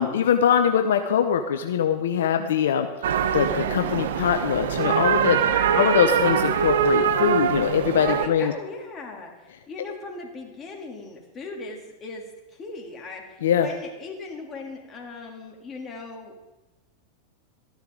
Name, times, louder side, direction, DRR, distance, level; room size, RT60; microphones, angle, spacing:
voice 1, 0.0-2.9 3.3-5.4 5.8-8.5 13.4-13.7, left 8 dB, 80° left, 7 dB, 0.8 m, -22 dB
sound 1, 3.0-8.3, right 8 dB, 75° right, 0.7 m, -23 dB
voice 2, 5.5-6.1 8.0-16.3, left 3 dB, 25° left, 0 dB, 2.8 m, -38 dB
13.5 x 10.5 x 3.8 m, 1.1 s
hypercardioid pair, 105°, 0 cm